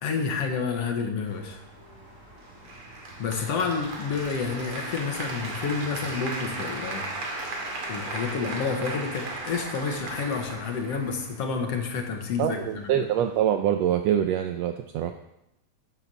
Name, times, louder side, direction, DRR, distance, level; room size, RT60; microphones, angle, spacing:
voice 1, 0.0-1.6 3.2-7.1 7.9-13.1, left 5 dB, 60° left, 3 dB, 2.2 m, -29 dB
sound 1, 1.2-13.6, right 1 dB, 25° right, 4.0 m, -50 dB
Applause, 2.6-11.7, right 2 dB, 50° right, 2.7 m, -36 dB
voice 2, 12.4-15.3, right 10 dB, 80° right, 7 dB, 1.6 m, -25 dB
9.4 x 8.4 x 6.9 m, 0.85 s
omnidirectional pair, 3.4 m